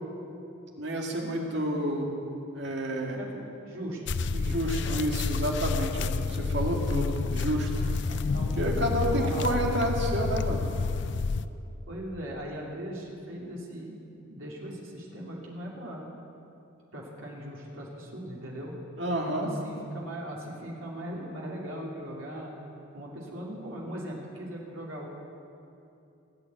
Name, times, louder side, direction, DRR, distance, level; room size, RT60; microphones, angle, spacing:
voice 1, 0.8-2.1 2.5-3.2 4.3-7.7 8.5-10.7 19.0-19.5, right 1 dB, 55° right, 0 dB, 2.2 m, -30 dB
voice 2, 3.1-4.0 4.3-4.6 4.8-5.1 8.1-9.6 11.9-14.0 14.3-16.1 16.9-18.7 19.3-22.5 22.9-25.1, equal, 85° right, -3 dB, 2.8 m, -39 dB
sound 1, 4.1-11.5, left 4 dB, 60° left, 0.4 m, -29 dB
19.0 x 8.8 x 8.3 m, 2.7 s
head